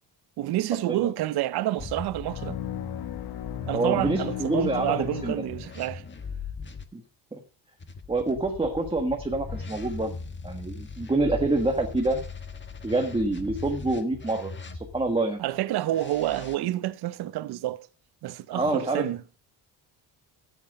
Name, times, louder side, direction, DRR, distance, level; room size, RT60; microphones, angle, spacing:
voice 1, 0.4-2.6 3.7-6.0 15.4-17.9 18.2-19.2, right 14 dB, 65° right, 0.9 m, -28 dB
sound 1, 1.8-6.9 7.8-15.2 15.9-16.6, left 4 dB, 25° left, 1.4 m, -40 dB
sound 2, 2.2-6.1, left 13 dB, 60° left, 1.2 m, -36 dB
voice 2, 3.7-5.4 6.9-7.0 7.3-7.4 8.1-10.1 10.4-12.2 12.8-15.4 18.5-19.1, right 2 dB, 15° right, 1.6 m, -27 dB
13.0 x 8.1 x 5.4 m
cardioid pair, 120°, 41 cm